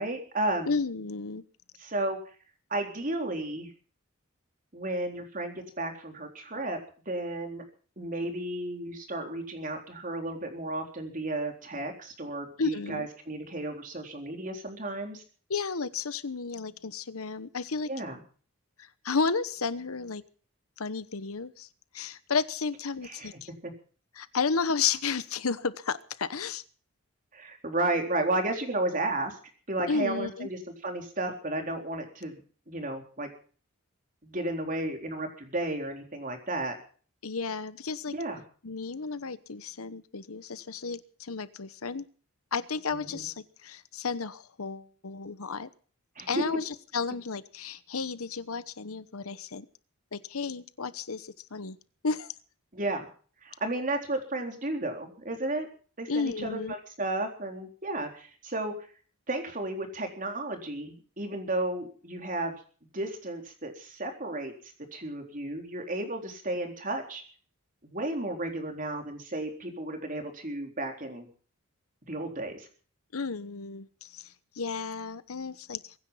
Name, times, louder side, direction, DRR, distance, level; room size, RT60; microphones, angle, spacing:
voice 1, 0.0-0.7 1.8-2.2 2.7-3.7 4.7-6.8 7.1-7.6 8.0-15.2 17.9-18.2 23.0-23.3 23.6-23.7 27.3-29.4 29.7-32.4 32.7-33.3 34.2-36.8 38.1-38.4 42.9-43.2 46.2-46.4 52.7-53.1 53.4-55.7 56.0-58.9 59.3-62.5 62.9-64.5 64.9-67.2 67.8-71.3 72.1-72.7, right 2 dB, 40° right, 4 dB, 3.8 m, -33 dB
voice 2, 0.7-1.4 12.6-13.1 15.5-17.9 18.8-20.2 20.8-21.7 21.9-23.5 24.2-26.6 29.8-30.5 37.2-38.1 38.6-42.1 42.5-45.7 46.3-49.7 50.1-51.8 52.0-52.3 56.1-56.7 73.1-75.9, left 5 dB, 80° left, 15 dB, 1.0 m, -32 dB
23.5 x 10.5 x 5.7 m, 0.42 s
head